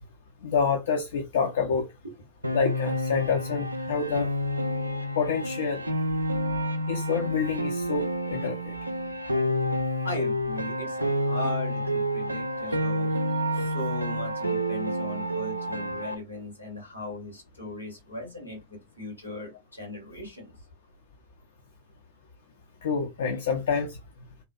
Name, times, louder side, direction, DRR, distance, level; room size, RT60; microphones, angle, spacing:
voice 1, 0.4-1.9 2.5-4.3 5.2-5.9 6.9-8.7 9.3-9.4 22.8-24.0, left 5 dB, 60° left, 0.4 m, -27 dB
Piano, 2.4-16.1, equal, 85° right, 0.3 m, -29 dB
voice 2, 10.0-13.1 13.5-20.5, left 1 dB, 90° left, 1.3 m, -38 dB
2.7 x 2.2 x 2.4 m
figure-of-eight pair, 90°, 0 cm